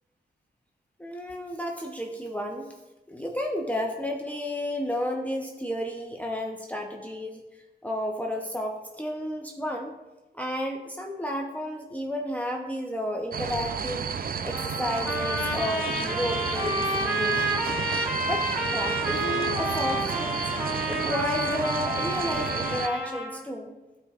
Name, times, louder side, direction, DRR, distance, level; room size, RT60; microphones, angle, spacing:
voice 1, 1.0-2.8 3.1-9.9 10.3-14.1 14.4-17.6 18.2-20.5 20.9-23.7, equal, 10° left, 1 dB, 0.8 m, -32 dB
sound 1, 13.3-22.9, right 6 dB, 50° right, 0.5 m, -32 dB
Trumpet, 14.5-23.4, equal, 10° right, 2.5 m, -30 dB
12.5 x 4.7 x 2.4 m, 1.1 s
cardioid pair, 55°, 19 cm